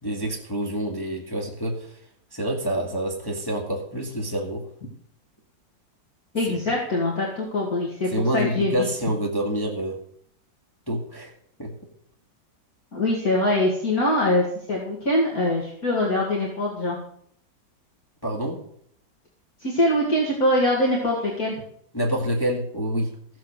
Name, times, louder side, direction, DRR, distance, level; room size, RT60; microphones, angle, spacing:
voice 1, 0.0-2.0 2.3-4.6 8.1-10.0 10.9-11.3 11.6-11.7 18.2-18.6 21.9-23.1, right 1 dB, 10° left, -1 dB, 1.9 m, -27 dB
voice 2, 6.3-8.9 12.9-17.0 19.6-21.6, left 1 dB, 50° left, -3 dB, 2.8 m, -23 dB
15.0 x 7.6 x 6.7 m, 0.65 s
omnidirectional pair, 2.0 m